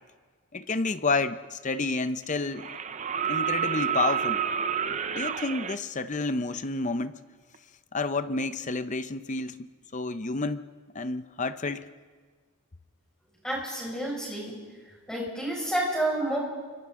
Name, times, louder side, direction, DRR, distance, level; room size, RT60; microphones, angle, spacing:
voice 1, 0.5-2.7 3.3-4.4 5.2-7.2 7.9-10.6 10.9-11.9, left 3 dB, 35° left, 11 dB, 0.7 m, -30 dB
sound 1, 1.4-1.5 2.5-5.8 7.5-7.6, right 8 dB, 30° right, 0.6 m, -29 dB
voice 2, 13.4-14.6 14.9-16.4, right 1 dB, 5° left, -4 dB, 5.8 m, -30 dB
28.5 x 25.0 x 3.7 m, 1.5 s
head